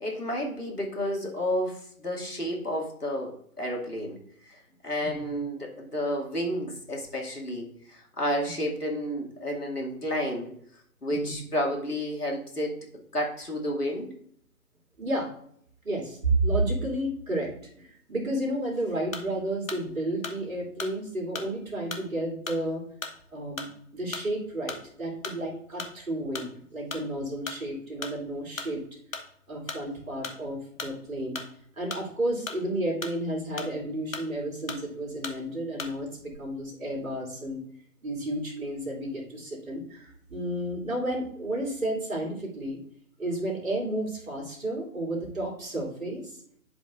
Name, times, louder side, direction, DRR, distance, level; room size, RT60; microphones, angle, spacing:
voice 1, 0.0-4.2 4.4-4.6 4.8-10.5 11.0-12.7 13.1-14.1, equal, 90° left, -2 dB, 2.4 m, -31 dB
voice 2, 5.0-5.3 11.1-11.5 15.0-15.3 15.8-22.8 23.3-23.7 23.9-28.8 29.5-31.4 31.8-37.6 38.0-42.8 43.2-46.4, right 1 dB, 65° right, -2 dB, 2.9 m, -31 dB
sound 1, 19.1-19.4 19.7-19.9 20.2-21.0 21.3-21.6 21.9-22.1 22.5-22.6 23.0-23.2 23.6-23.8 24.1-24.3 24.7-24.9 25.2-25.5 25.8-26.0 26.3-26.5 26.9-27.1 27.5-27.6 28.0-28.2 28.6-28.8 29.1-29.3 29.7-29.9 30.2-30.4 30.8-31.0 31.4-31.5 31.9-32.6 33.0-33.2 33.6-33.8 34.1-34.4 34.7-34.9 35.2-35.4 35.8-36.0 36.2-36.4, left 4 dB, 60° left, 1.1 m, -37 dB
11.0 x 5.1 x 2.5 m, 0.66 s
figure-of-eight pair, 145°, 45 cm